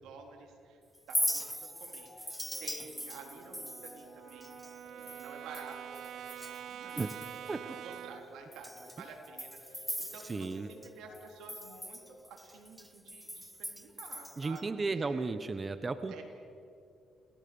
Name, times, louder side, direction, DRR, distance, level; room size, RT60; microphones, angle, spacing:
voice 1, 0.0-0.8 1.1-4.6 4.9-7.0 7.6-15.3 16.1-16.2, right 5 dB, 85° right, 3 dB, 3.8 m, -51 dB
Chink clink, 1.0-6.6 6.9-7.5 7.9-8.0 8.5-10.9 11.1-14.6, equal, ahead, 0.8 m, -40 dB
sound 1, 1.5-12.2, left 2 dB, 35° left, 7.9 m, -57 dB
Brass instrument, 2.8-8.4, right 9 dB, 70° right, 0.5 m, -46 dB
voice 2, 10.3-10.7 14.4-16.2, right 3 dB, 30° right, 11 dB, 1.0 m, -34 dB
28.0 x 18.5 x 7.1 m, 2.6 s
cardioid pair, 90°, 0 cm